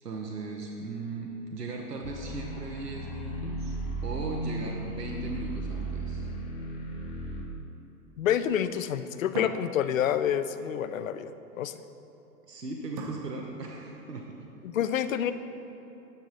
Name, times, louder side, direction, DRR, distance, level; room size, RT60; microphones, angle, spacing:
voice 1, 0.0-3.7 4.0-6.3 12.5-14.5, right 3 dB, 85° right, 1 dB, 0.9 m, -38 dB
sound 1, 2.0-7.4, right 2 dB, 35° left, 1.3 m, -35 dB
sound 2, 5.7-7.3 9.3-10.7 13.0-14.1, right 3 dB, 25° right, 0.4 m, -43 dB
voice 2, 8.2-11.8 14.6-15.3, left 9 dB, 60° left, 12 dB, 0.5 m, -28 dB
9.2 x 7.0 x 4.0 m, 3.0 s
figure-of-eight pair, 105°, 47 cm